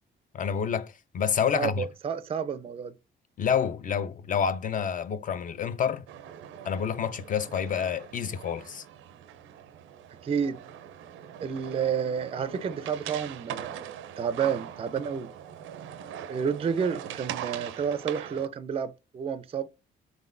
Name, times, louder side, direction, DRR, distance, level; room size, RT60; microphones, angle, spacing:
voice 1, 0.3-1.8 3.4-6.0 6.6-8.8, left 7 dB, 40° left, 0.5 m, -28 dB
voice 2, 1.5-2.9 10.2-10.6 11.4-15.3 16.3-19.7, right 7 dB, 30° right, 0.4 m, -30 dB
sound 1, 6.1-18.5, right 10 dB, 85° right, 0.5 m, -41 dB
3.8 x 3.6 x 2.5 m
cardioid pair, 90°, 20 cm